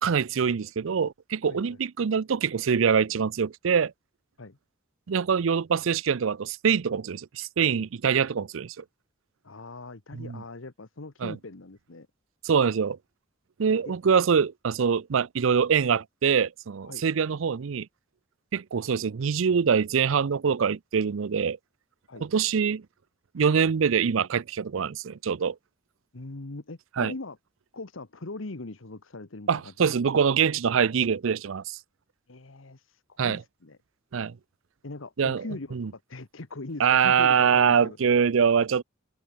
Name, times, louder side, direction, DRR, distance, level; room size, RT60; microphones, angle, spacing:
voice 1, 0.0-3.9 5.1-8.8 10.1-10.4 11.2-11.3 12.4-13.0 13.6-17.9 18.5-21.6 22.2-22.8 23.3-25.6 27.0-27.1 29.5-31.8 33.2-33.4 34.1-34.3 35.2-35.4 35.7-35.9 36.8-38.8, right 6 dB, 75° right, 0.5 m, -24 dB
voice 2, 9.4-12.1 13.9-14.0 16.8-17.0 22.1-22.2 26.1-27.4 27.7-29.9 32.3-33.8 34.8-38.0, left 2 dB, 75° left, 1.3 m, -41 dB
head